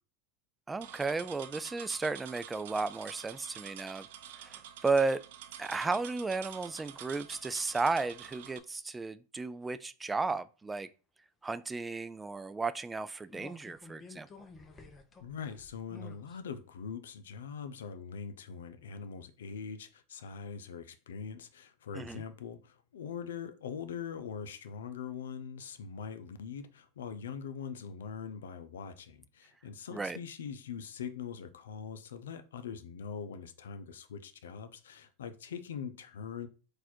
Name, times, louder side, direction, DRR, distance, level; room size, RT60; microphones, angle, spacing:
voice 1, 0.7-4.1 4.4-5.2 5.6-10.9 11.4-14.3 21.9-22.2 29.9-30.2, right 3 dB, 15° right, 0.3 m, -34 dB
sound 1, 0.8-8.6, right 10 dB, 75° right, 0.5 m, -48 dB
sound 2, 13.3-16.4 16.8-16.9, left 3 dB, 20° left, 0.8 m, -52 dB
voice 2, 15.2-36.5, left 6 dB, 85° left, 0.5 m, -42 dB
4.2 x 2.5 x 4.3 m
hypercardioid pair, 105°, 0 cm